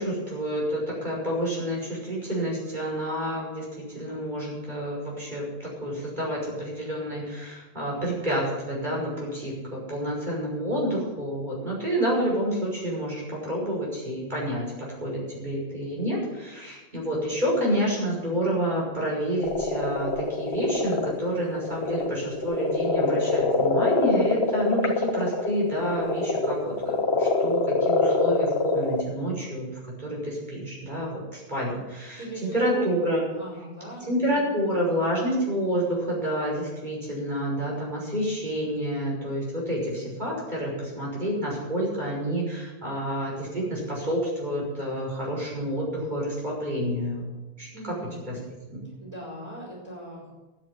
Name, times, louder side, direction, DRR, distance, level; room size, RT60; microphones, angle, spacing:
voice 1, 0.0-29.7 30.0-32.2 32.5-33.2 34.1-47.3 47.6-47.9 48.3-48.4 48.7-48.8, equal, 45° right, -4 dB, 6.0 m, -29 dB
sound 1, 19.4-29.0, left 3 dB, 80° left, 1.7 m, -25 dB
voice 2, 32.2-34.8 47.7-48.4 49.0-50.3, right 1 dB, 15° right, -8 dB, 5.1 m, -39 dB
12.0 x 8.7 x 8.7 m, 1.1 s
omnidirectional pair, 1.1 m